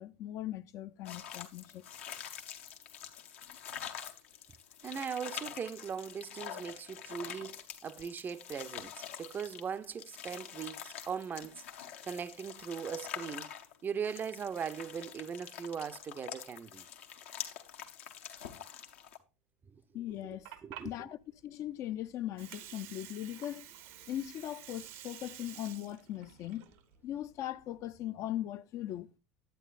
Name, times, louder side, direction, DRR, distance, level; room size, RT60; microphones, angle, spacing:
voice 1, 0.0-1.8 19.9-20.5 20.8-23.7 24.1-26.7 27.0-29.1, left 13 dB, 45° left, 0.4 m, -39 dB
sound 1, 1.1-19.2, left 9 dB, 75° left, 0.9 m, -46 dB
voice 2, 4.8-11.6 12.0-13.5 13.8-16.9 20.6-21.1, right 7 dB, 25° right, 0.5 m, -39 dB
Water, 20.1-28.0, right 11 dB, 65° right, 0.8 m, -51 dB
9.2 x 8.4 x 2.4 m
hypercardioid pair, 80°, 7 cm